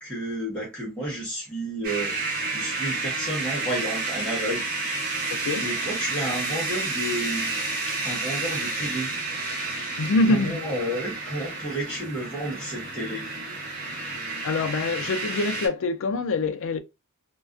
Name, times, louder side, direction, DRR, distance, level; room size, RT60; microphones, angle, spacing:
voice 1, 0.0-4.7 5.6-7.5 7.9-9.1 10.3-13.2, right 1 dB, 5° left, 0.7 m, -31 dB
sound 1, 1.8-15.7, right 3 dB, 40° right, 1.0 m, -30 dB
voice 2, 5.3-5.7 10.0-10.6 14.0-14.1 14.4-16.8, left 2 dB, 60° left, 0.4 m, -25 dB
2.4 x 2.2 x 2.4 m
head